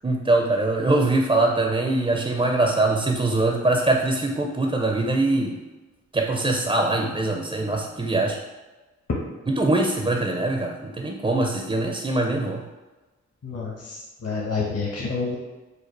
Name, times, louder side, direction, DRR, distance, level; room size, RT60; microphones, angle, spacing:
voice 1, 0.0-5.6 6.1-8.4 9.5-12.6, right 2 dB, 20° right, 2 dB, 0.5 m, -22 dB
voice 2, 13.4-15.4, left 4 dB, 50° left, -4 dB, 1.0 m, -29 dB
5.0 x 2.3 x 4.6 m, 1.2 s
cardioid pair, 55°, 31 cm